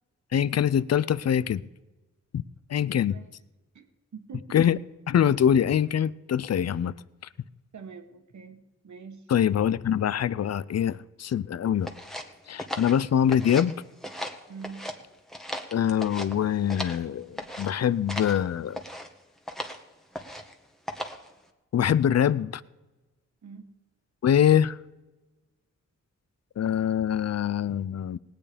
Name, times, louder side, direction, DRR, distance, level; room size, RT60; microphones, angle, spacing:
voice 1, 0.3-1.7 2.3-2.4 2.7-3.2 4.5-4.8 5.1-6.9 9.3-11.9 12.5-13.8 15.7-18.8 21.7-22.6 24.2-24.8 26.6-28.2, left 9 dB, 60° left, 19 dB, 0.5 m, -24 dB
voice 2, 3.0-3.3 3.7-3.9 4.1-4.6 7.7-9.3 14.5-14.9 23.4-23.7, right 5 dB, 70° right, 8 dB, 1.5 m, -44 dB
sound 1, 11.8-13.7 14.0-15.0 15.3-17.0 17.4-17.7 18.1-18.4 18.7-19.1 19.5-19.8 20.1-20.5 20.9-21.3, equal, ahead, 1.6 m, -37 dB
18.5 x 8.8 x 5.1 m, 1.1 s
cardioid pair, 75°, 30 cm